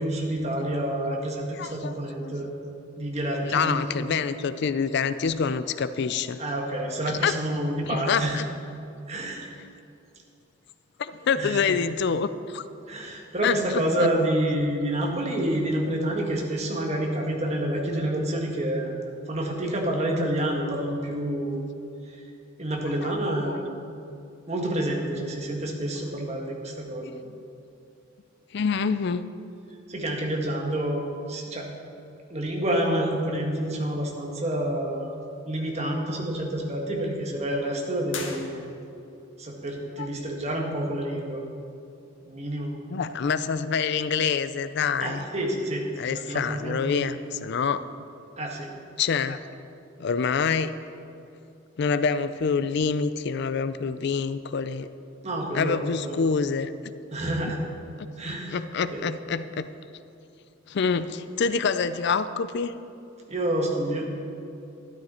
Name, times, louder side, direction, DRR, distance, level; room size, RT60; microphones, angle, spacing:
voice 1, 0.0-2.5 3.0-4.2 6.4-8.4 9.1-9.5 11.4-11.8 12.9-18.9 19.3-21.6 22.6-23.7 24.5-27.1 29.9-31.7 32.3-35.2 35.4-38.6 39.4-41.4 42.2-42.7 45.0-47.1 48.4-48.7 55.2-56.2 57.1-57.6 58.2-58.6 58.9-59.0 63.3-64.1, right 1 dB, 35° right, 0 dB, 1.6 m, -28 dB
voice 2, 1.6-1.9 2.2-2.3 3.5-6.4 7.1-7.3 7.9-8.4 11.0-12.6 13.4-13.5 14.0-14.1 23.0-23.6 27.0-27.1 28.5-29.3 40.0-40.1 42.9-45.2 46.0-47.8 49.0-49.4 50.0-50.7 51.8-54.9 55.5-56.9 58.0-59.7 60.7-62.7, left 5 dB, 60° left, 13 dB, 0.4 m, -26 dB
sound 1, 38.1-39.1, left 4 dB, 75° left, 1.5 m, -38 dB
13.0 x 12.0 x 4.3 m, 2.7 s
head